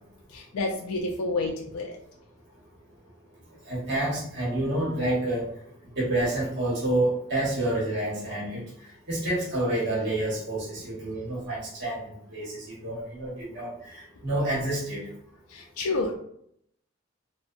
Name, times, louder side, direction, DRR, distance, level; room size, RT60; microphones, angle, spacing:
voice 1, 0.3-2.0 15.5-16.1, left 2 dB, 85° left, 0 dB, 0.4 m, -29 dB
voice 2, 3.7-5.5 6.0-8.6 9.1-12.0 12.3-15.1, right 1 dB, 50° right, -5 dB, 0.9 m, -28 dB
2.6 x 2.2 x 2.4 m, 0.68 s
head